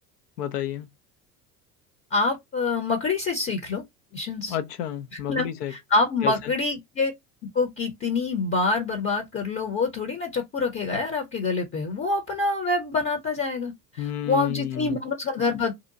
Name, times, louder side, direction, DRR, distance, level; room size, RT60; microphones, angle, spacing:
voice 1, 0.4-0.9 4.5-5.7 6.2-6.5 14.0-15.0, left 10 dB, 75° left, 0.7 m, -30 dB
voice 2, 2.1-3.8 4.1-4.6 5.3-7.1 7.5-15.7, left 3 dB, 25° left, 0.8 m, -26 dB
2.8 x 2.3 x 2.6 m
hypercardioid pair, 75°, 47 cm